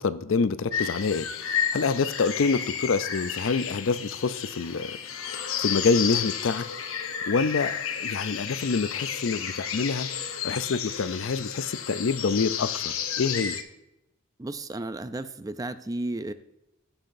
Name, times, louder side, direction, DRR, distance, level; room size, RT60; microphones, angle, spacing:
voice 1, 0.0-5.0 5.3-6.6 7.3-10.1 10.4-13.6, left 4 dB, 65° left, 14 dB, 0.5 m, -27 dB
sound 1, 0.7-13.6, left 8 dB, 85° left, 0.9 m, -32 dB
voice 2, 14.4-16.3, right 2 dB, 15° right, 11 dB, 0.4 m, -33 dB
15.5 x 5.7 x 2.6 m, 0.89 s
head